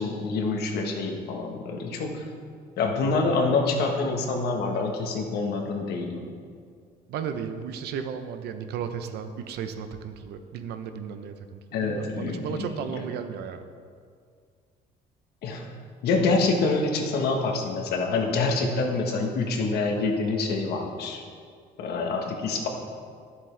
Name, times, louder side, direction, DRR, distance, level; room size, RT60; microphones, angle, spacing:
voice 1, 0.0-2.2 2.8-6.2 11.7-13.0 15.4-15.7 16.0-21.2 21.8-22.7, left 3 dB, 70° left, 2 dB, 1.3 m, -26 dB
voice 2, 7.1-11.3 11.7-13.6, right 7 dB, 75° right, 8 dB, 0.7 m, -34 dB
10.5 x 7.5 x 3.3 m, 2.1 s
cardioid pair, 110°, 17 cm